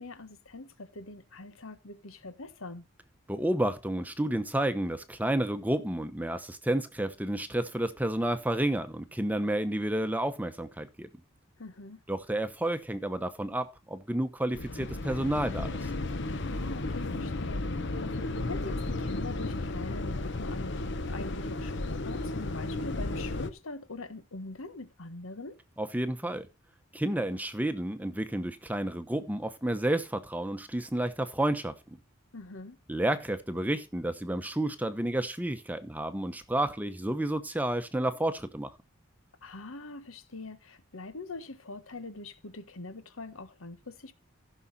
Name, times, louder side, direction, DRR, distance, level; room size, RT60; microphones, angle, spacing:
voice 1, 0.0-2.9 11.6-12.0 16.4-20.8 21.1-25.6 32.3-32.8 39.4-44.1, left 3 dB, 90° left, 1.3 m, -43 dB
voice 2, 3.3-11.1 12.1-15.9 25.8-26.5 26.9-32.0 32.9-38.7, right 1 dB, 10° right, 0.9 m, -31 dB
sound 1, 14.5-23.5, left 2 dB, 60° left, 1.0 m, -33 dB
15.0 x 6.3 x 4.1 m
head